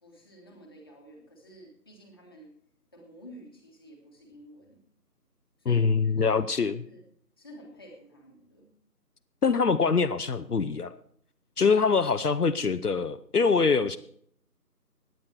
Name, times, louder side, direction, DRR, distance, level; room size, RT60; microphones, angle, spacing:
voice 1, 0.0-2.5 2.9-4.8 5.6-6.4 6.8-7.0 7.4-8.7, equal, 15° left, -1 dB, 1.5 m, -51 dB
voice 2, 5.7-6.8 9.4-10.9 11.6-14.0, left 5 dB, 70° left, 10 dB, 0.8 m, -24 dB
16.5 x 9.7 x 4.4 m, 0.63 s
figure-of-eight pair, 160°, 48 cm